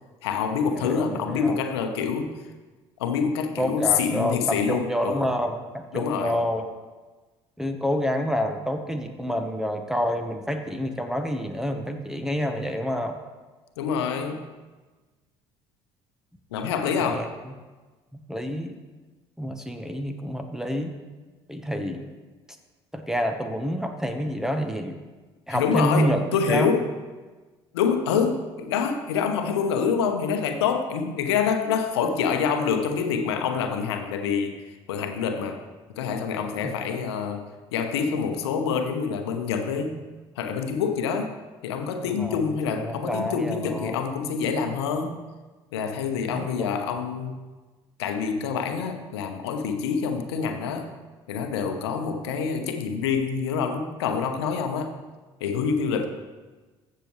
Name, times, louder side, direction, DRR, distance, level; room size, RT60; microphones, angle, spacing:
voice 1, 0.2-2.3 3.0-5.3 5.9-6.4 13.8-14.5 16.5-17.3 25.5-26.9 27.7-34.6 34.9-35.6 36.0-40.0 40.4-41.3 41.6-45.2 45.7-47.4 48.0-50.9 51.3-54.9 55.4-56.1, left 6 dB, 80° left, 6 dB, 1.0 m, -26 dB
voice 2, 0.7-1.6 3.6-6.6 7.6-13.2 17.0-17.3 18.1-18.7 19.4-21.0 21.5-22.0 22.9-25.0 25.5-26.7 36.6-36.7 42.1-42.4 42.8-44.0 46.3-46.7, equal, 5° right, 5 dB, 1.1 m, -28 dB
15.0 x 6.8 x 3.1 m, 1.3 s
hypercardioid pair, 60°, 13 cm